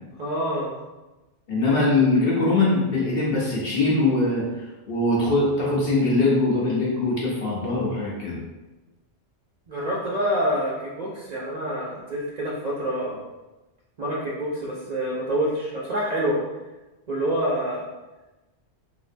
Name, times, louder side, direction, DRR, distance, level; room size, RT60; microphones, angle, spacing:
voice 1, 0.2-0.8 9.7-13.2 14.0-16.4 17.1-17.8, equal, 50° right, -6 dB, 0.5 m, -27 dB
voice 2, 1.5-8.4, left 2 dB, 60° left, -5 dB, 1.0 m, -22 dB
3.2 x 2.7 x 2.5 m, 1.1 s
omnidirectional pair, 1.2 m